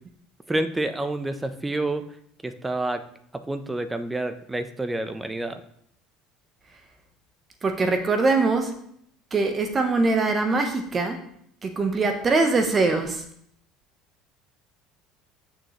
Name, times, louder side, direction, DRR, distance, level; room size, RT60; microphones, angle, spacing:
voice 1, 0.5-2.0 2.4-3.0 3.3-5.6, right 2 dB, 15° right, 10 dB, 0.9 m, -28 dB
voice 2, 7.6-8.8 9.3-11.2 11.6-13.2, right 3 dB, 30° right, 6 dB, 1.2 m, -22 dB
8.8 x 6.7 x 3.2 m, 0.69 s
figure-of-eight pair, 65°, 0 cm